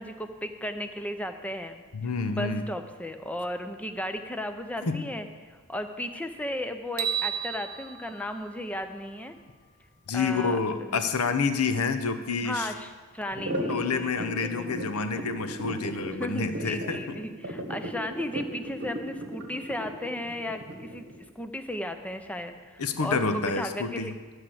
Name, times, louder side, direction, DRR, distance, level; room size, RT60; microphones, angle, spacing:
voice 1, 0.0-1.8 2.3-9.4 10.1-10.6 10.9-11.0 12.4-14.8 15.1-15.3 16.2-21.1 21.4-24.1, left 1 dB, 5° left, 7 dB, 0.5 m, -35 dB
voice 2, 1.9-2.6 4.8-5.0 10.1-12.7 13.7-17.2 22.8-24.1, left 4 dB, 75° left, 9 dB, 0.7 m, -28 dB
sound 1, 7.0-9.2, right 9 dB, 70° right, 0.9 m, -33 dB
sound 2, 13.3-21.1, right 1 dB, 50° right, 1.1 m, -35 dB
12.0 x 4.9 x 7.5 m, 1.4 s
head